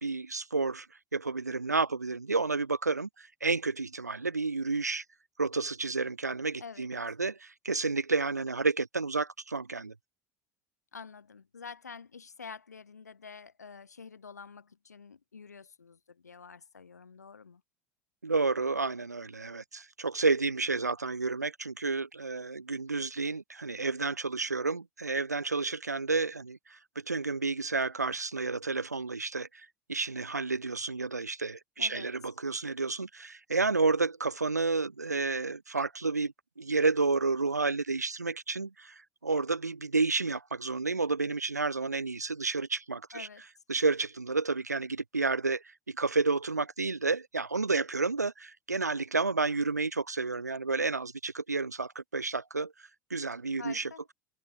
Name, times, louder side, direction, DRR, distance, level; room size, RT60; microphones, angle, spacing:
voice 1, 0.0-0.9 1.1-5.0 5.4-9.9 18.2-26.8 27.1-43.3 43.7-52.7 53.1-53.9, right 3 dB, 90° right, 1.8 m, -31 dB
voice 2, 10.9-17.6 31.8-32.1 43.1-43.4 53.6-54.0, left 5 dB, 85° left, 7.9 m, -47 dB
figure-of-eight pair, 70°, 9 cm